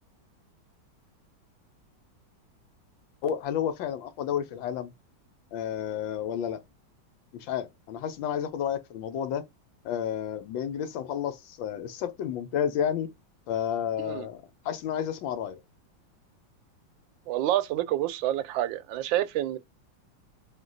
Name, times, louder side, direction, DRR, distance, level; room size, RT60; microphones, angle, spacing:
voice 1, 3.2-4.9 5.5-6.6 7.3-9.4 9.8-13.1 13.5-15.6, left 9 dB, 80° left, 1.4 m, -31 dB
voice 2, 17.3-19.6, right 13 dB, 80° right, 1.3 m, -28 dB
3.8 x 2.8 x 3.8 m
omnidirectional pair, 2.1 m